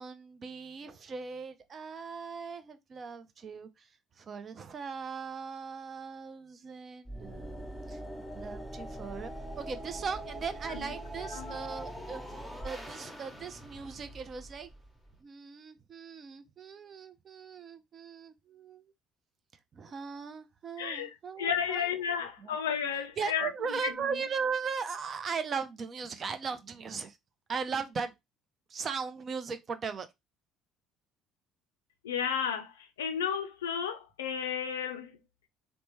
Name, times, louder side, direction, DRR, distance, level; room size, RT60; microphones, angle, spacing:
voice 1, 0.0-3.9 4.2-7.6 7.9-8.0 8.3-9.3 9.6-12.2 12.6-14.7 15.2-18.9 19.7-21.9 22.4-22.5 23.2-27.2 27.5-28.1 28.7-30.1, right 5 dB, 45° right, 0.5 m, -38 dB
sound 1, 7.0-15.2, right 1 dB, 5° right, 1.0 m, -42 dB
voice 2, 11.2-11.6 20.8-24.2 32.0-35.2, left 8 dB, 90° left, 0.4 m, -33 dB
3.1 x 2.1 x 3.0 m
hypercardioid pair, 60°, 0 cm